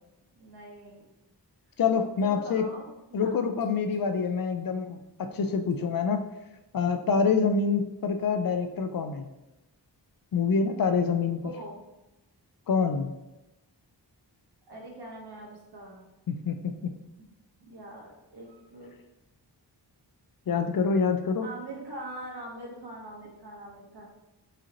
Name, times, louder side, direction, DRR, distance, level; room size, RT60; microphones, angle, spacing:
voice 1, 0.4-1.0 2.2-3.7 5.4-5.9 7.3-7.8 11.3-11.8 14.7-16.0 17.2-17.3 17.6-18.9 21.4-24.1, right 1 dB, 65° right, -3 dB, 1.3 m, -43 dB
voice 2, 1.8-2.6 3.1-6.2 6.7-9.3 10.3-11.4 12.7-13.1 16.3-16.6 20.5-21.5, left 5 dB, 55° left, 7 dB, 0.5 m, -26 dB
4.8 x 2.8 x 3.0 m, 0.98 s
wide cardioid pair, 65°, 42 cm